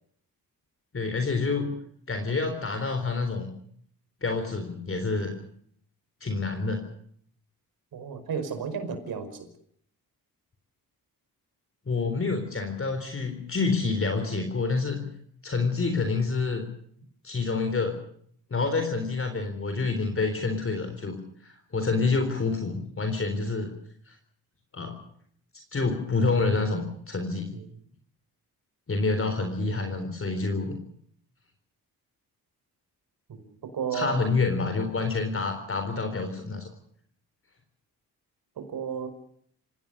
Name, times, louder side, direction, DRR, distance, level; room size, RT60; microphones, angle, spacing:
voice 1, 0.9-1.7 2.1-3.5 4.2-5.3 6.2-6.8 11.9-15.1 15.4-16.7 17.2-18.0 18.5-23.7 24.1-24.2 24.7-25.0 25.7-27.5 28.9-30.8 33.9-36.7, left 3 dB, 35° left, 6 dB, 3.9 m, -28 dB
voice 2, 7.9-9.5 27.5-27.7 33.3-33.4 33.7-34.2 38.6-39.1, right 6 dB, 70° right, 8 dB, 5.3 m, -33 dB
28.0 x 17.5 x 6.6 m, 0.63 s
cardioid pair, 85°, 37 cm